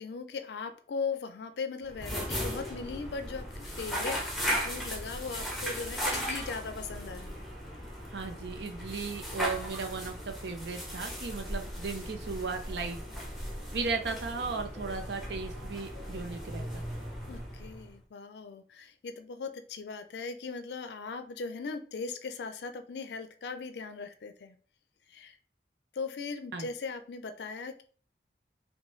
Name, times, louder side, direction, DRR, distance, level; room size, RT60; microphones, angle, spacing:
voice 1, 0.0-7.4 17.3-24.6 25.1-25.4 25.9-27.8, left 4 dB, 75° left, 9 dB, 0.4 m, -39 dB
sound 1, 1.8-18.0, equal, ahead, 0.8 m, -37 dB
voice 2, 8.1-13.0 13.7-16.8 26.5-26.7, right 4 dB, 80° right, 5 dB, 0.6 m, -36 dB
5.2 x 2.2 x 3.1 m, 0.43 s
head